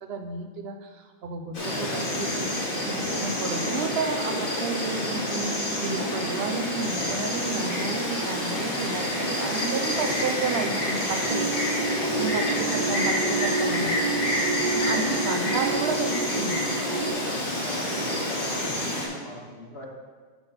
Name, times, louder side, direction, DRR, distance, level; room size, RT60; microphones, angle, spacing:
voice 1, 0.0-2.5 2.9-11.5 12.2-14.0 14.7-16.6, right 4 dB, 85° right, 6 dB, 0.9 m, -32 dB
Insect, 1.5-19.1, left 1 dB, 60° left, 1.4 m, -28 dB
sound 1, 11.2-17.1, right 3 dB, 50° right, 0.7 m, -30 dB
voice 2, 11.7-12.8 14.7-15.5 16.5-19.9, left 1 dB, 85° left, -3 dB, 1.7 m, -40 dB
7.1 x 3.9 x 5.6 m, 1.5 s
omnidirectional pair, 1.0 m